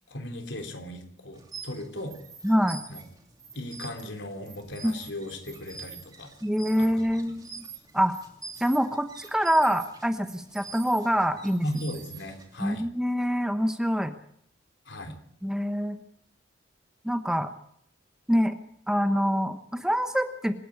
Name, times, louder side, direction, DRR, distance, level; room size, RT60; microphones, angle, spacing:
voice 1, 0.1-2.2 2.9-3.0 3.5-6.3 6.8-7.3 11.6-12.8 14.9-15.2, left 1 dB, 75° left, 5 dB, 3.6 m, -37 dB
sound 1, 1.3-12.6, right 4 dB, 20° right, 3.0 m, -46 dB
voice 2, 2.4-2.8 4.8-4.9 6.4-7.5 7.9-8.2 8.6-11.7 12.6-14.1 15.4-16.0 17.0-17.5 18.3-18.5 18.9-20.5, equal, 5° right, 8 dB, 1.0 m, -25 dB
26.5 x 10.0 x 9.7 m, 0.68 s
head